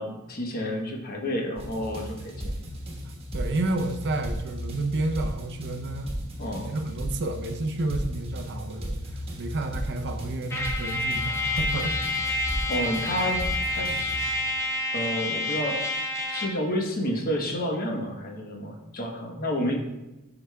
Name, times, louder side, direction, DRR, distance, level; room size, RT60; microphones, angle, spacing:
voice 1, 0.0-2.5 6.4-6.8 12.7-14.3 14.9-16.0 16.3-19.8, equal, 40° left, 1 dB, 0.9 m, -30 dB
sound 1, 1.6-14.3, equal, 25° right, 1.3 m, -35 dB
voice 2, 3.3-6.1 6.6-9.0 9.4-11.9, right 2 dB, 50° right, 6 dB, 0.5 m, -30 dB
Trumpet, 10.5-16.6, left 2 dB, 10° left, 0.6 m, -29 dB
11.0 x 4.8 x 2.2 m, 0.98 s
head